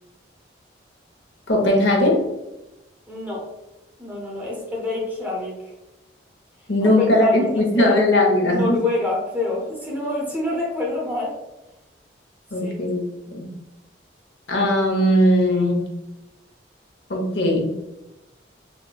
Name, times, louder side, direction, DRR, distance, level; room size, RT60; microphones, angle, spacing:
voice 1, 1.5-2.2 6.7-8.8 12.5-13.0 13.3-13.5 14.5-15.8 17.1-17.7, left 1 dB, 70° left, 0 dB, 0.7 m, -19 dB
voice 2, 3.1-3.5 4.0-5.6 6.8-6.9 7.2-11.4 12.6-12.7, left 2 dB, 10° right, -4 dB, 0.7 m, -27 dB
4.0 x 2.1 x 2.2 m, 0.96 s
head